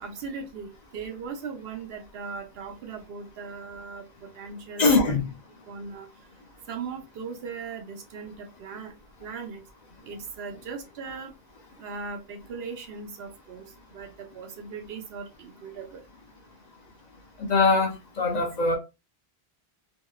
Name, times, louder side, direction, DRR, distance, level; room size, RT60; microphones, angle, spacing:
voice 1, 0.0-5.1 5.7-6.1 6.7-8.9 9.2-9.6 10.0-11.3 11.8-13.6 13.9-16.0, right 5 dB, 80° right, 0.9 m, -38 dB
voice 2, 4.8-5.2 17.4-18.8, left 3 dB, 50° left, 0.6 m, -22 dB
2.7 x 2.0 x 2.2 m
omnidirectional pair, 1.0 m